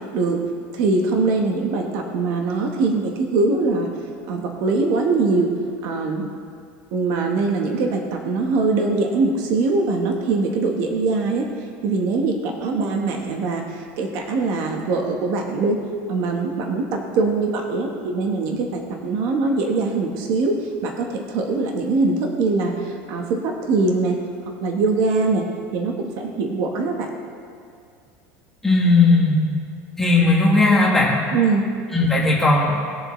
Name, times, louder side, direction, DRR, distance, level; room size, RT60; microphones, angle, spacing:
voice 1, 0.7-3.9 4.3-5.5 5.8-6.3 6.9-11.5 11.8-15.8 16.1-24.2 24.6-25.5 25.7-27.1 31.3-31.6, right 3 dB, 50° right, 2 dB, 1.1 m, -22 dB
voice 2, 28.6-29.4 30.0-31.1 31.9-32.7, left 3 dB, 5° left, -4 dB, 1.5 m, -16 dB
19.5 x 6.9 x 3.1 m, 2.3 s
cardioid pair, 170°, 6 cm